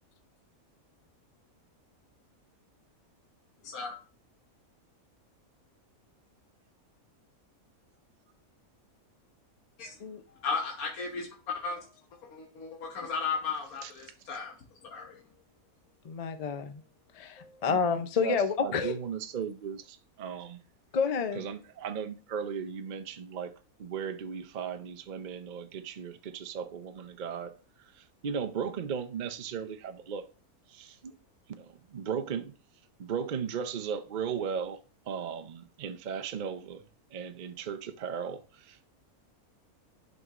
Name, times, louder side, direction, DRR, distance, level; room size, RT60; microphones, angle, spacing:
voice 1, 3.6-3.9 9.8-9.9 10.4-11.8 12.3-14.5 14.9-15.1, left 5 dB, 80° left, 1.6 m, -35 dB
voice 2, 16.0-16.8 17.1-18.9 20.9-21.4, left 6 dB, 55° left, 0.4 m, -30 dB
voice 3, 17.7-20.6 21.3-23.5 23.8-30.3 30.7-31.1 31.6-32.5 33.0-34.8 35.1-36.8 37.1-38.9, right 7 dB, 50° right, 0.5 m, -36 dB
11.0 x 5.3 x 2.5 m
omnidirectional pair, 1.5 m